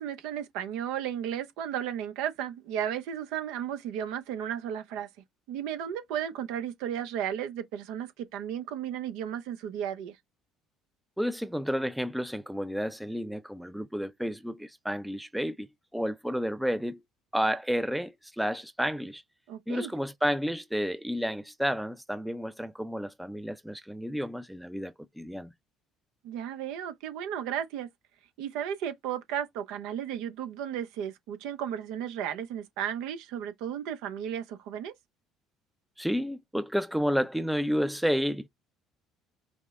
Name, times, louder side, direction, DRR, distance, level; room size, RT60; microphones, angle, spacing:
voice 1, 0.0-5.1 5.5-10.2 19.5-19.9 26.2-27.9 28.4-34.9, right 9 dB, 80° right, 0.8 m, -34 dB
voice 2, 11.2-15.7 15.9-17.0 17.3-19.2 19.7-25.5 36.0-38.5, equal, ahead, 0.4 m, -31 dB
5.3 x 2.1 x 3.6 m
supercardioid pair, 85°, 0 cm